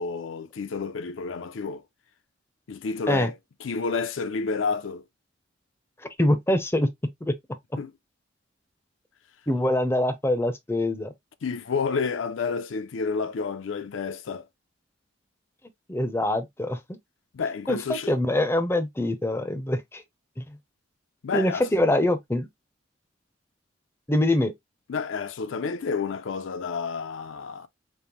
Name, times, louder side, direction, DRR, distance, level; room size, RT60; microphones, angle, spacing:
voice 1, 0.0-1.8 2.7-3.4 3.6-5.0 7.8-7.9 11.4-14.5 17.3-18.2 21.2-21.7 24.9-27.7, left 5 dB, 80° left, 0.5 m, -30 dB
voice 2, 6.2-6.9 7.2-7.3 9.5-11.1 15.9-16.8 17.7-20.0 20.4-20.6 21.3-22.5 24.1-24.5, left 1 dB, 15° left, 0.5 m, -24 dB
5.3 x 2.1 x 2.9 m
head